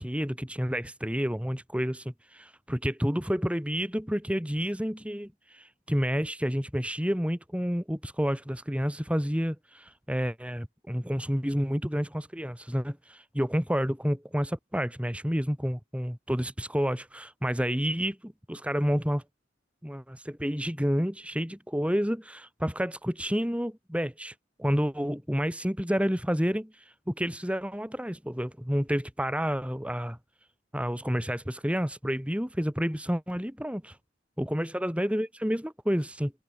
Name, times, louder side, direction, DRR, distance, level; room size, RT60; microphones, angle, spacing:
voice 1, 0.0-19.2 19.8-24.3 24.6-26.7 27.1-30.2 30.7-34.0 34.4-36.3, equal, 5° right, 4.6 m, -29 dB
head